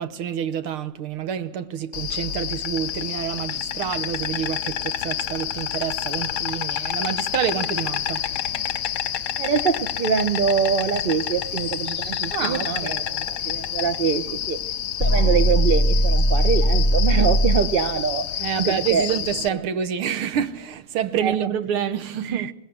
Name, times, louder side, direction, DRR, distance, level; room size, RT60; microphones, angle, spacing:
voice 1, 0.0-8.2 12.3-13.1 17.2-17.3 18.4-22.5, right 9 dB, 75° right, 2.0 m, -28 dB
Insect, 1.9-19.5, left 10 dB, 60° left, 1.2 m, -29 dB
voice 2, 9.4-14.6 15.0-18.3 18.5-19.1 19.5-19.6 21.2-21.4 22.2-22.5, right 6 dB, 60° right, 0.5 m, -24 dB
sound 1, 10.1-19.7, right 1 dB, 35° right, 4.3 m, -47 dB
sound 2, 15.0-17.8, equal, 15° left, 1.1 m, -19 dB
21.5 x 18.0 x 7.9 m
omnidirectional pair, 2.4 m